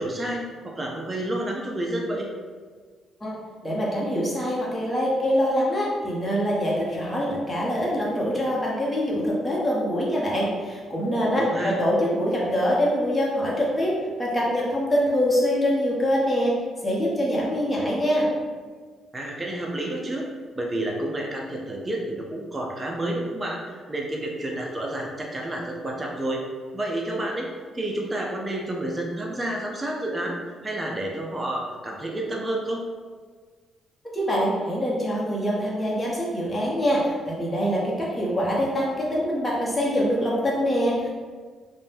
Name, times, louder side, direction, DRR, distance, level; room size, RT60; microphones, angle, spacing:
voice 1, 0.0-2.3 11.4-11.8 19.1-20.3 20.5-26.4 26.7-27.5 27.7-30.4 30.6-32.8, right 1 dB, 25° right, -1 dB, 0.4 m, -30 dB
voice 2, 3.6-16.6 16.8-18.3 34.1-41.1, equal, 15° left, -5 dB, 0.9 m, -24 dB
2.6 x 2.1 x 3.3 m, 1.5 s
cardioid pair, 90°, 0 cm